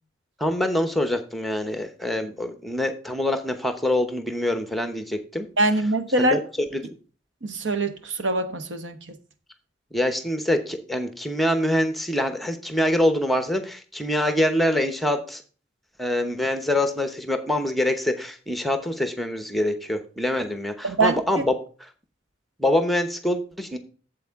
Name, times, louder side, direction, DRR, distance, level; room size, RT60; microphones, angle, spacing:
voice 1, 0.4-5.5 6.2-6.4 6.7-6.8 9.9-15.4 16.0-21.6 22.6-23.8, left 1 dB, ahead, 0.8 m, -25 dB
voice 2, 5.6-6.4 7.4-9.0 20.8-21.5, right 2 dB, 70° right, 1.0 m, -23 dB
8.3 x 7.5 x 3.6 m
head